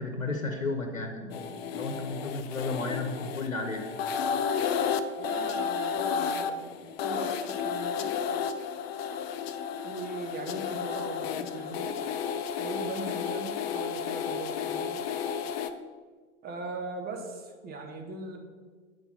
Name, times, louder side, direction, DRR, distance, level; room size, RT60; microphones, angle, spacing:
voice 1, 0.0-3.8, left 3 dB, 90° left, 3 dB, 1.0 m, -33 dB
sound 1, 1.3-15.7, left 7 dB, 50° left, 0.6 m, -32 dB
voice 2, 5.2-8.1 9.8-12.0 12.6-15.0 16.4-18.4, right 3 dB, 25° right, 3 dB, 1.3 m, -39 dB
8.2 x 4.5 x 6.1 m, 1.5 s
figure-of-eight pair, 95°, 39 cm